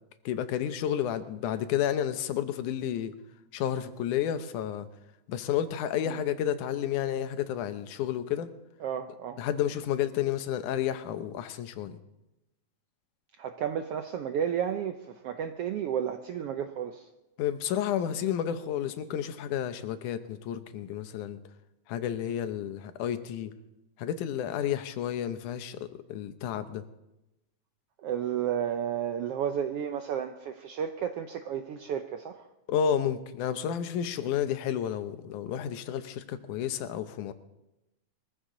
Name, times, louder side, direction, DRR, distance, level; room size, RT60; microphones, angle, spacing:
voice 1, 0.3-3.1 3.5-4.9 5.3-8.5 9.4-12.0 17.4-21.4 21.9-23.5 24.0-26.8 32.7-37.3, left 9 dB, 85° left, 10 dB, 2.4 m, -31 dB
voice 2, 8.8-9.4 13.4-17.1 28.0-32.5, right 9 dB, 80° right, 7 dB, 1.3 m, -32 dB
22.0 x 14.5 x 3.8 m, 0.95 s
omnidirectional pair, 3.5 m